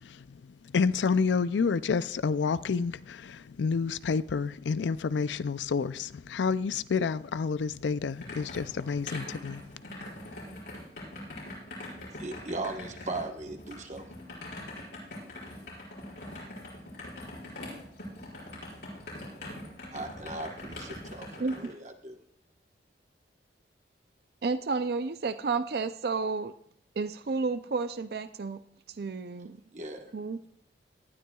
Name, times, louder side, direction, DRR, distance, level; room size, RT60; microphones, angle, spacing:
voice 1, 0.0-9.6 10.0-10.1, left 5 dB, 90° left, 0.4 m, -29 dB
sound 1, 7.7-21.7, left 1 dB, 75° left, 5.8 m, -43 dB
voice 2, 12.2-14.1 19.9-22.2 29.7-30.1, right 2 dB, 40° right, 1.2 m, -38 dB
voice 3, 24.4-26.5 27.0-28.6 29.0-29.6 30.1-30.4, right 4 dB, 60° right, 0.5 m, -31 dB
19.0 x 12.0 x 2.3 m
head